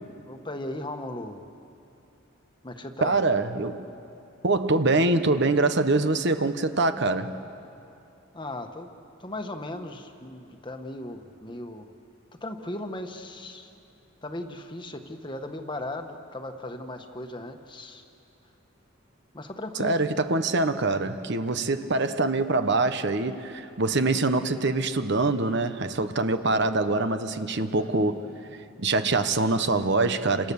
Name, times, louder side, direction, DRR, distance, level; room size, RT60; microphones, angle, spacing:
voice 1, 0.2-1.5 2.6-3.2 8.3-8.9 9.2-11.9 12.4-13.7 14.2-18.0 19.3-20.0 27.7-28.0, left 1 dB, 25° left, 6 dB, 1.3 m, -37 dB
voice 2, 3.0-3.9 4.4-7.4 19.8-28.2 28.8-30.5, right 3 dB, 55° right, 9 dB, 1.1 m, -24 dB
30.0 x 26.0 x 7.1 m, 2.7 s
head